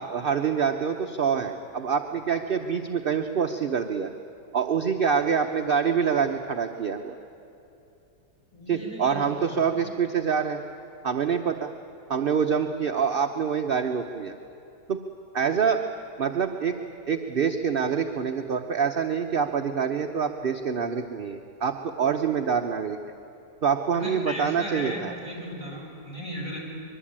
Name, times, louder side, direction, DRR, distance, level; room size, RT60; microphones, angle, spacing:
voice 1, 0.0-4.1 4.5-7.1 8.7-10.6 11.0-11.7 12.1-14.3 14.9-15.0 15.3-15.8 16.2-16.8 17.1-23.0 23.6-25.1, right 6 dB, 45° right, 5 dB, 0.8 m, -26 dB
voice 2, 8.5-9.8 23.9-26.6, equal, 15° left, -3 dB, 6.5 m, -36 dB
24.0 x 22.5 x 8.8 m, 2.7 s
omnidirectional pair, 1.8 m